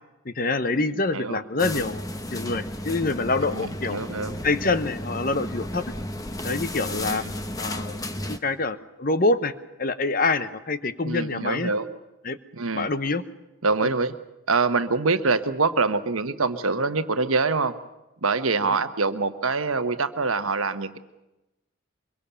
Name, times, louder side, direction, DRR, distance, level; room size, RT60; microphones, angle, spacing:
voice 1, 0.2-4.0 4.4-5.8 6.4-7.2 7.6-9.5 9.8-11.7 12.2-12.4 12.7-13.2, left 3 dB, 45° left, 12 dB, 0.9 m, -26 dB
sound 1, 1.6-8.4, left 1 dB, 15° left, 1.0 m, -33 dB
voice 2, 3.5-4.4 7.1-7.3 11.0-11.9 12.5-12.9 13.6-14.1 14.5-17.7 18.2-21.0, right 4 dB, 85° right, 10 dB, 1.1 m, -25 dB
24.0 x 22.5 x 7.0 m, 1.0 s
head